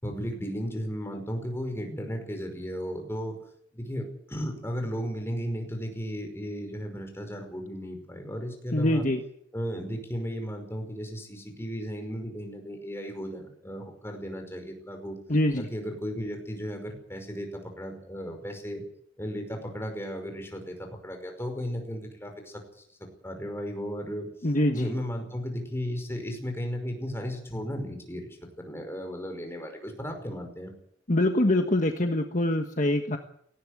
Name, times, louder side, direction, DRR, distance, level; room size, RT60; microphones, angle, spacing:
voice 1, 0.0-3.4 3.7-9.1 9.5-15.2 15.6-17.5 17.8-18.8 19.2-22.8 23.2-24.3 24.7-30.7, equal, 15° left, 4 dB, 5.3 m, -35 dB
voice 2, 8.7-9.2 15.3-15.7 24.4-24.9 31.1-33.2, left 1 dB, 40° left, 5 dB, 1.4 m, -24 dB
19.0 x 16.0 x 9.8 m, 0.70 s
head